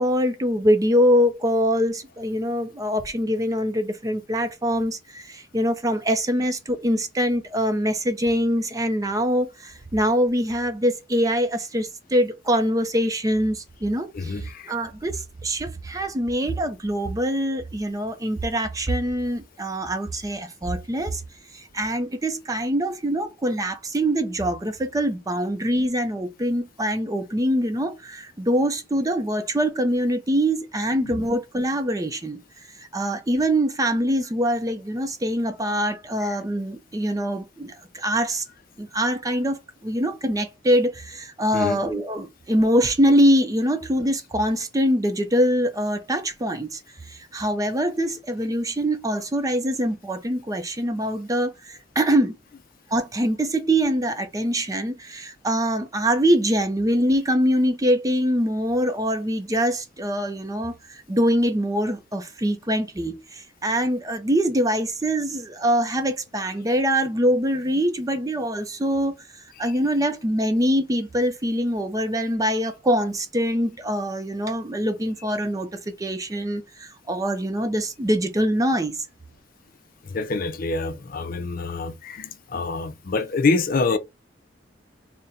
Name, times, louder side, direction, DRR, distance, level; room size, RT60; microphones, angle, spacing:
voice 1, 0.0-21.2 21.5-32.4 32.8-38.4 38.8-46.8 47.1-52.3 52.9-69.2 69.6-79.0, equal, 20° right, 0.5 m, -24 dB
voice 2, 14.1-14.7 30.9-31.2 36.2-36.4 41.5-41.8 69.5-69.7 80.0-84.0, left 3 dB, 50° left, 0.5 m, -26 dB
4.2 x 2.1 x 3.7 m
head